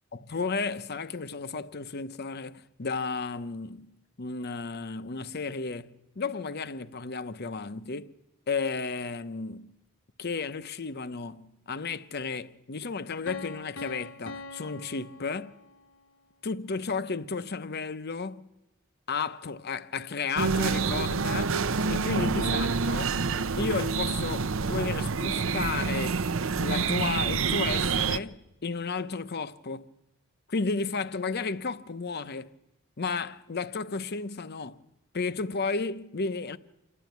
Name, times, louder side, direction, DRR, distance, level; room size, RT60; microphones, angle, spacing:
voice 1, 0.1-8.1 8.5-9.7 10.2-15.5 16.4-18.5 19.1-21.6 21.9-23.2 23.6-26.2 26.5-29.9 30.5-32.5 33.0-34.8 35.1-36.6, left 4 dB, 50° left, 0.8 m, -33 dB
Piano, 13.3-16.0, left 3 dB, 90° left, 0.9 m, -43 dB
sound 1, 20.4-28.2, right 4 dB, 70° right, 0.7 m, -27 dB
27.5 x 12.0 x 9.3 m
head